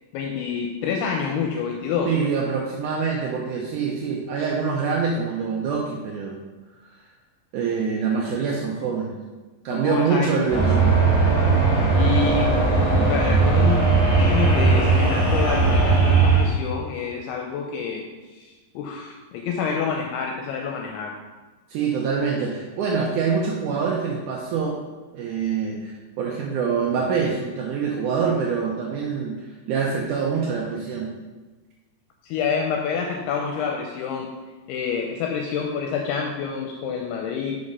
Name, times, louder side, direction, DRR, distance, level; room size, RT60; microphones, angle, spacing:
voice 1, 0.1-2.2 9.7-10.5 12.0-13.8 14.2-18.0 18.3-21.1 32.2-34.3 34.7-37.6, left 6 dB, 80° left, 1 dB, 2.6 m, -28 dB
voice 2, 2.1-6.4 7.5-9.2 9.7-11.0 21.7-24.8 25.1-31.1, right 5 dB, 85° right, -2 dB, 1.7 m, -25 dB
sound 1, 10.5-16.5, right 3 dB, 35° right, 3.2 m, -18 dB
5.8 x 5.2 x 5.4 m, 1.2 s
omnidirectional pair, 4.6 m